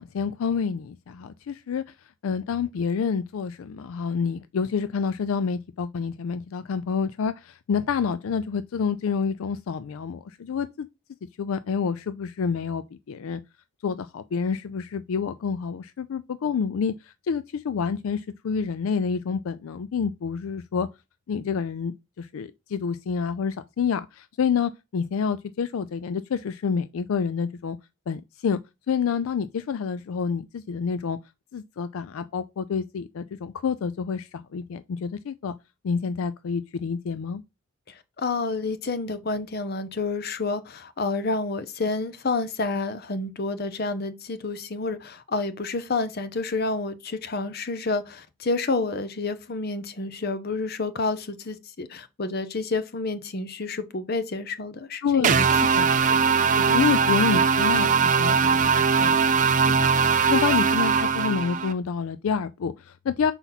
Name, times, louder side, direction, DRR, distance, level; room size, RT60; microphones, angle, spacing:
voice 1, 0.0-1.8 2.2-10.9 11.4-13.4 13.8-16.9 17.3-20.9 21.3-27.8 28.1-28.6 28.9-31.2 31.5-35.5 35.8-37.4 55.0-63.3, left 6 dB, 75° left, 0.4 m, -28 dB
voice 2, 38.2-55.4 55.8-55.9, left 3 dB, 45° left, 0.7 m, -29 dB
sound 1, 55.2-61.7, right 6 dB, 35° right, 0.5 m, -20 dB
5.8 x 4.0 x 4.0 m
head